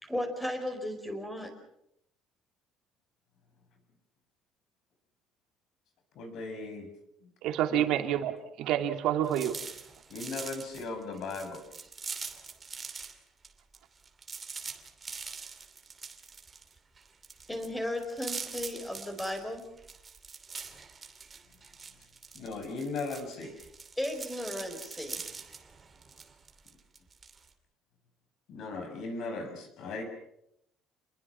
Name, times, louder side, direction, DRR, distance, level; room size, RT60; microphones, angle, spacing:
voice 1, 0.0-1.5 17.5-19.6 24.0-25.2, left 1 dB, 5° left, 6 dB, 5.0 m, -35 dB
voice 2, 6.1-6.9 7.7-7.8 10.1-11.6 22.3-23.5 28.5-30.0, left 3 dB, 60° left, 7 dB, 6.7 m, -37 dB
voice 3, 7.4-9.6, right 11 dB, 70° right, 5 dB, 2.9 m, -28 dB
sound 1, 9.2-13.2 13.4-27.5, right 5 dB, 25° right, 2.8 m, -44 dB
29.5 x 22.0 x 6.1 m, 0.77 s
cardioid pair, 140°, 0 cm